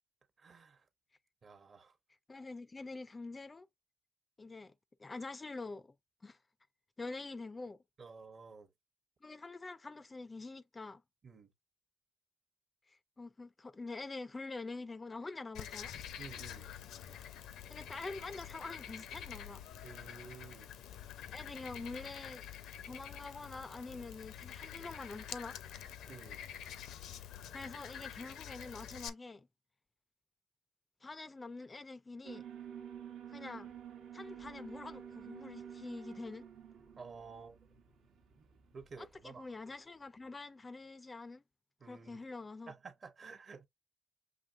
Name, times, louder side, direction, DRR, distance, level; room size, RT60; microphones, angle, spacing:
voice 1, 0.4-0.9 1.4-2.0 8.0-8.7 11.2-11.5 16.2-16.7 19.8-20.7 26.1-26.4 37.0-37.6 38.4-38.5 38.7-39.5 41.8-42.2 42.7-43.7, right 4 dB, 45° right, 0.9 m, -52 dB
voice 2, 2.3-3.7 4.4-4.7 5.0-5.9 6.2-6.4 7.0-7.8 9.2-11.0 12.9-15.9 17.7-19.6 21.3-22.4 22.8-25.6 27.5-29.5 31.0-32.5 33.3-33.7 34.1-36.5 39.0-41.4 41.8-42.7, left 3 dB, 25° left, 0.3 m, -46 dB
Frog, 15.5-29.1, left 10 dB, 85° left, 0.5 m, -47 dB
Alarm, 32.2-39.4, right 8 dB, 80° right, 1.0 m, -50 dB
5.9 x 2.8 x 2.4 m
cardioid pair, 90°, 0 cm